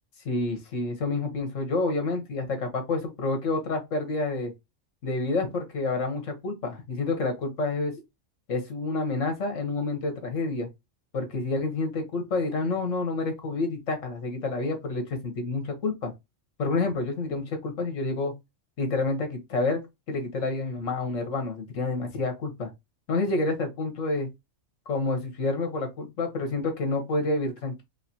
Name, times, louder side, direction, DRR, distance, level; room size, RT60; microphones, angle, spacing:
voice 1, 0.2-4.5 5.0-7.9 8.5-10.7 11.1-16.1 16.6-18.4 18.8-22.7 23.1-24.3 24.9-27.8, left 3 dB, 70° left, 1.5 m, -28 dB
5.0 x 2.5 x 2.8 m
omnidirectional pair, 1.4 m